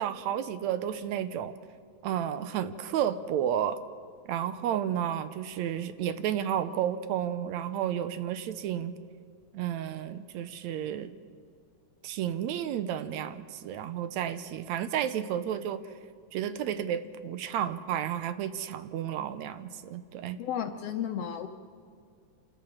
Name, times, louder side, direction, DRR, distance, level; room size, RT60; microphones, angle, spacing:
voice 1, 0.0-1.5 2.0-3.8 4.3-9.0 9.5-11.2 12.0-15.8 16.3-20.4, right 10 dB, 75° right, 12 dB, 1.9 m, -32 dB
voice 2, 20.4-21.5, left 9 dB, 70° left, 7 dB, 1.5 m, -33 dB
28.0 x 13.5 x 7.3 m, 2.3 s
omnidirectional pair, 3.4 m